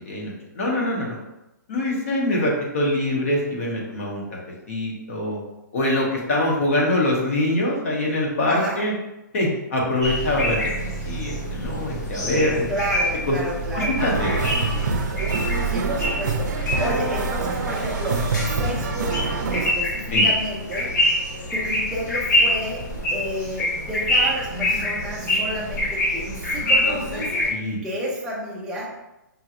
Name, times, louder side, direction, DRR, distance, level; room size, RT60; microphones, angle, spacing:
voice 1, 0.1-1.2 1.7-4.2 4.7-5.4 5.7-8.9 9.3-10.7 11.0-12.6 13.3-13.4 13.7-14.3 20.1-20.3 27.5-27.8, left 1 dB, 45° left, -2 dB, 1.0 m, -24 dB
voice 2, 8.5-8.8 12.7-14.0 15.6-19.2 19.5-20.9 21.5-22.8 23.1-27.3 27.8-28.9, equal, 5° right, -4 dB, 0.4 m, -31 dB
sound 1, 10.0-27.5, equal, 60° left, 1.4 m, -25 dB
sound 2, 14.0-19.7, right 3 dB, 65° right, 0.5 m, -26 dB
5.4 x 2.9 x 2.5 m, 0.94 s
hypercardioid pair, 175°, 10 cm